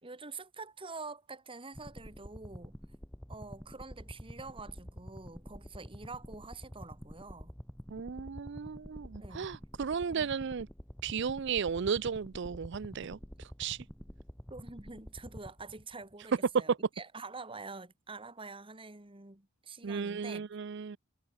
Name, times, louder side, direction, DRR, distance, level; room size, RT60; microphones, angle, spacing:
voice 1, 0.0-2.8 3.3-7.5 9.2-9.5 10.1-10.5 14.5-20.5, right 3 dB, 25° right, 2.0 m, -46 dB
sound 1, 1.7-16.1, equal, 5° left, 0.9 m, -48 dB
voice 2, 7.9-10.7 11.0-13.8 16.5-16.6 19.8-21.0, right 6 dB, 60° right, 0.5 m, -34 dB
head